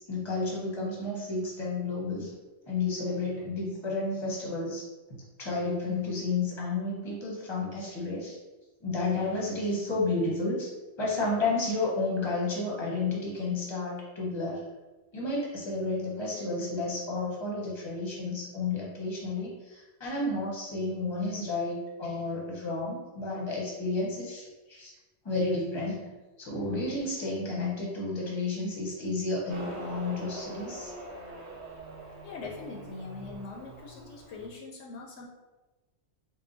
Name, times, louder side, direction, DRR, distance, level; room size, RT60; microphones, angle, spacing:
voice 1, 0.1-2.3 2.7-4.8 5.4-8.4 8.8-10.7 11.0-14.7 15.1-24.9 25.2-26.1 26.4-30.9, left 3 dB, 25° left, -4 dB, 1.0 m, -31 dB
Motorcycle, 29.5-34.5, right 2 dB, 70° right, 1.1 m, -43 dB
voice 2, 32.2-35.2, left 3 dB, 75° left, -2 dB, 0.9 m, -42 dB
3.8 x 2.2 x 3.9 m, 1.1 s
omnidirectional pair, 1.2 m